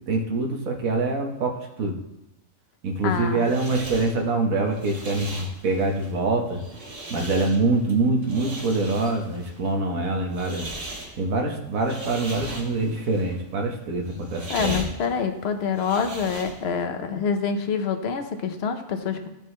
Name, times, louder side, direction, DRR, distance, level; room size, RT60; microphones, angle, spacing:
voice 1, 0.0-2.0 2.8-6.6 7.1-10.7 11.2-14.8, right 3 dB, 80° right, 2 dB, 1.6 m, -25 dB
voice 2, 3.0-3.4 14.5-19.3, left 6 dB, 55° left, 6 dB, 1.0 m, -26 dB
sound 1, 3.0-16.8, right 2 dB, 45° right, 1.5 m, -39 dB
14.5 x 5.2 x 3.2 m, 0.88 s
omnidirectional pair, 1.4 m